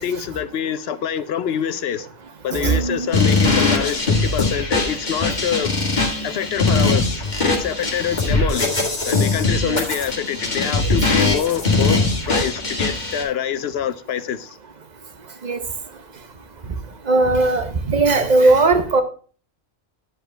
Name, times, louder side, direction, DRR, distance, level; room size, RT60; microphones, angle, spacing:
voice 1, 0.0-2.1 2.4-5.7 6.2-8.7 9.0-12.0 12.2-14.6, left 9 dB, 65° left, 0.7 m, -25 dB
voice 2, 2.5-3.1 9.6-9.8 15.4-15.6 17.1-19.0, right 3 dB, 35° right, 0.9 m, -18 dB
sound 1, 3.1-13.2, left 3 dB, 35° left, 2.0 m, -21 dB
10.0 x 5.0 x 4.4 m
omnidirectional pair, 1.3 m